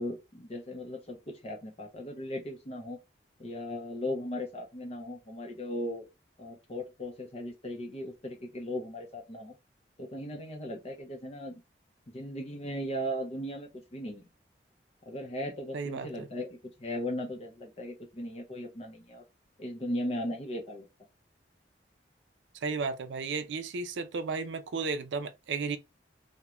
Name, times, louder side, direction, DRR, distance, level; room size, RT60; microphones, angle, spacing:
voice 1, 0.0-3.0 3.4-6.1 6.4-9.5 10.0-11.6 12.1-14.3 15.1-19.2 19.6-20.9, left 1 dB, 35° left, 0.5 m, -37 dB
voice 2, 15.7-16.3 22.6-25.8, right 4 dB, 85° right, 0.4 m, -34 dB
2.4 x 2.1 x 3.0 m
head